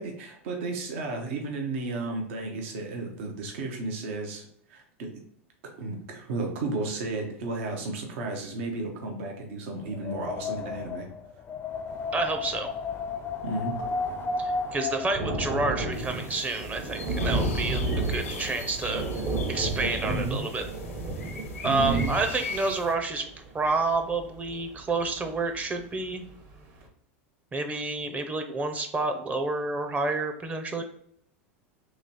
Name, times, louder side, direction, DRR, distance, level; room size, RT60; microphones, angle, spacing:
voice 1, 0.0-5.1 5.6-11.1 13.4-13.8 20.0-20.4 21.6-22.1, right 3 dB, 65° right, 2 dB, 0.9 m, -33 dB
Wind, 9.8-15.9, left 4 dB, 30° left, 0.5 m, -33 dB
voice 2, 12.1-12.7 14.4-19.0 19.5-20.6 21.6-23.3 23.5-26.2 27.5-30.8, right 3 dB, 20° right, 6 dB, 0.7 m, -29 dB
Thunder, 12.7-12.8 13.0-25.6 26.1-26.2 26.5-26.6, right 2 dB, 45° right, 1.1 m, -32 dB
sound 1, 15.9-22.9, left 4 dB, 85° left, 0.8 m, -41 dB
3.1 x 3.0 x 4.1 m, 0.68 s
hypercardioid pair, 95°, 7 cm